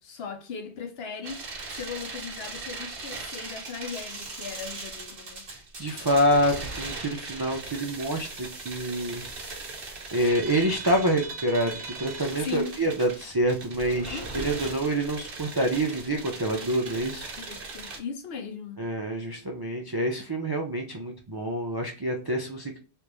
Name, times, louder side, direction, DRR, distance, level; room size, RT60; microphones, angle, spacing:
voice 1, 0.0-5.4 12.4-12.8 14.1-14.5 17.4-18.8, left 5 dB, 65° left, 0.8 m, -38 dB
sound 1, 1.2-18.0, right 3 dB, 55° right, 1.1 m, -39 dB
voice 2, 5.5-9.3 9.6-9.8 10.1-17.3 18.8-22.8, right 1 dB, 40° right, 0.3 m, -27 dB
3.4 x 2.5 x 2.9 m
omnidirectional pair, 1.1 m